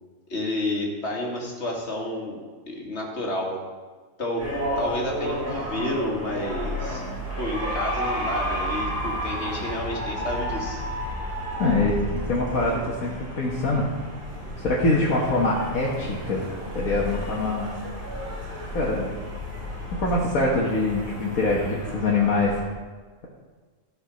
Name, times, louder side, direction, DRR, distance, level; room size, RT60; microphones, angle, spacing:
voice 1, 0.3-2.4 2.7-3.6 4.2-4.4 4.8-7.0 7.4-10.8, left 1 dB, 50° left, -1 dB, 2.3 m, -30 dB
sound 1, 4.4-22.6, equal, 45° right, 3.3 m, -32 dB
voice 2, 11.6-13.8 14.6-16.5 16.7-17.7 18.7-19.1 19.9-22.6, left 2 dB, 80° left, -4 dB, 1.8 m, -24 dB
13.5 x 5.5 x 6.3 m, 1.4 s
omnidirectional pair, 1.4 m